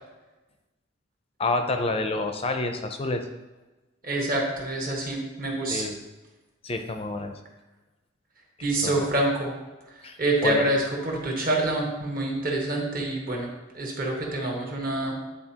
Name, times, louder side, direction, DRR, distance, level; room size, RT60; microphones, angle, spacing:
voice 1, 1.4-3.3 5.7-6.0 6.6-7.4 8.8-9.1 10.0-10.7, left 2 dB, 30° left, 6 dB, 0.4 m, -28 dB
voice 2, 4.0-5.9 8.6-9.5 10.2-15.2, right 2 dB, 45° right, 0 dB, 1.3 m, -27 dB
9.6 x 4.1 x 2.9 m, 1.1 s
head